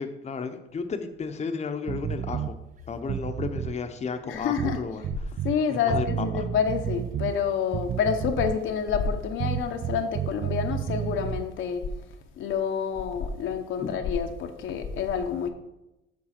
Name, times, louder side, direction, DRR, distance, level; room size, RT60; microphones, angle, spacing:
voice 1, 0.0-2.6 2.9-5.3 5.7-6.5 13.8-13.9, left 5 dB, 35° left, 6 dB, 0.7 m, -33 dB
sound 1, 1.9-2.5 3.0-3.8 4.6-5.6 5.9-7.4 7.7-8.7 9.4-11.5, right 10 dB, 40° right, 0.4 m, -31 dB
voice 2, 4.2-4.8 5.4-11.8 12.4-15.5, left 7 dB, 80° left, 5 dB, 0.9 m, -28 dB
7.5 x 3.8 x 5.8 m, 0.92 s
cardioid pair, 90°, 20 cm